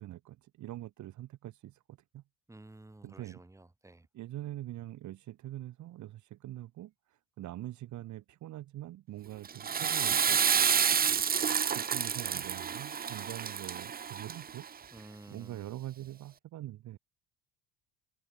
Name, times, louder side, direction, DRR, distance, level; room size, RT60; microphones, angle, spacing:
voice 1, 0.0-2.2 3.0-3.4 4.1-10.4 11.0-11.1 11.7-14.6 15.3-17.0, right 14 dB, 55° right, 1.8 m, -44 dB
voice 2, 2.5-4.1 14.9-15.7, right 2 dB, 10° right, 6.9 m, -52 dB
Water / Toilet flush, 9.4-14.7, right 7 dB, 25° right, 1.0 m, -29 dB
cardioid pair, 140°, 36 cm